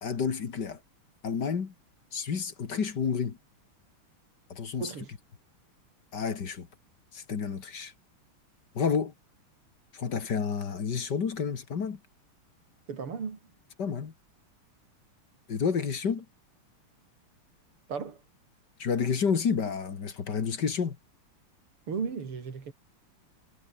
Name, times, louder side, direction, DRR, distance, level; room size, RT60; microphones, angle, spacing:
voice 1, 0.0-0.8 1.2-1.7 2.1-3.4 4.5-4.9 6.1-6.7 7.1-7.9 8.8-9.1 9.9-12.0 13.8-14.1 15.5-16.3 18.8-21.0, left 6 dB, 50° left, 2.4 m, -30 dB
voice 2, 4.8-5.1 12.9-13.4 17.9-18.2 21.9-22.7, right 5 dB, 85° right, 3.9 m, -35 dB
omnidirectional pair, 2.4 m